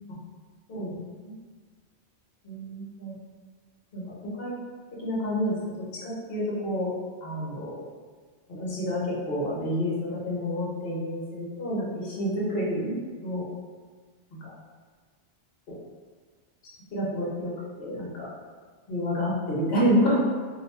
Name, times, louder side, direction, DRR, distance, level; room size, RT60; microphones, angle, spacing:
voice 1, 0.7-1.3 2.4-3.2 3.9-4.6 5.0-5.6 6.0-6.9 7.2-7.8 8.5-12.9 13.2-13.5 15.7-15.8 16.9-18.3 18.9-20.2, equal, 55° left, -5 dB, 1.0 m, -29 dB
2.7 x 2.2 x 4.0 m, 1.5 s
omnidirectional pair, 1.2 m